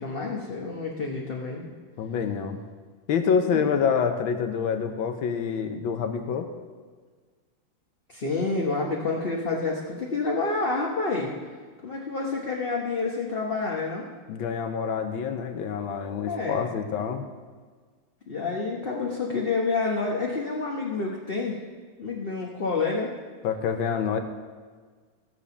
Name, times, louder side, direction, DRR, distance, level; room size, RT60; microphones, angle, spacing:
voice 1, 0.0-1.6 3.5-3.6 8.1-11.3 11.8-14.1 16.2-16.7 18.3-21.6 22.0-23.1, left 3 dB, 40° left, -1 dB, 0.9 m, -28 dB
voice 2, 2.0-2.6 3.1-6.5 14.3-17.2 23.4-24.2, left 6 dB, 75° left, 7 dB, 1.6 m, -27 dB
15.0 x 5.1 x 6.9 m, 1.5 s
omnidirectional pair, 2.2 m